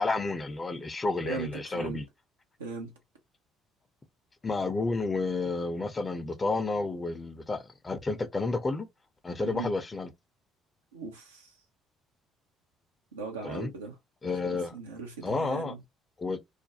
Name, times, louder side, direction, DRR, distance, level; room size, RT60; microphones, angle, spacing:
voice 1, 0.0-2.0 4.4-8.9 9.2-10.1 13.4-13.7 14.2-14.8 15.2-15.7 16.2-16.4, left 3 dB, 25° left, 0.6 m, -31 dB
voice 2, 1.2-2.0 2.6-2.9 9.4-9.7 10.9-11.5 13.1-13.9 14.5-15.8, right 4 dB, 85° right, 0.7 m, -38 dB
2.5 x 2.2 x 2.7 m
figure-of-eight pair, 50°, 0 cm